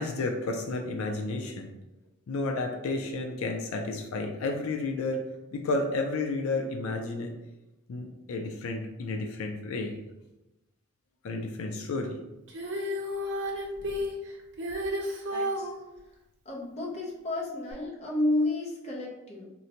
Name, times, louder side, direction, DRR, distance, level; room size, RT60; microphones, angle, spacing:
voice 1, 0.0-1.7 2.3-5.3 5.5-7.3 7.9-9.9 11.2-12.2 13.8-14.0, left 2 dB, 80° left, 3 dB, 0.4 m, -31 dB
Female singing, 12.5-15.8 17.7-17.8, equal, 60° right, 0.6 m, -32 dB
voice 2, 15.3-15.7 16.4-19.5, left 1 dB, 30° left, -2 dB, 0.6 m, -31 dB
3.9 x 2.1 x 2.8 m, 0.97 s
head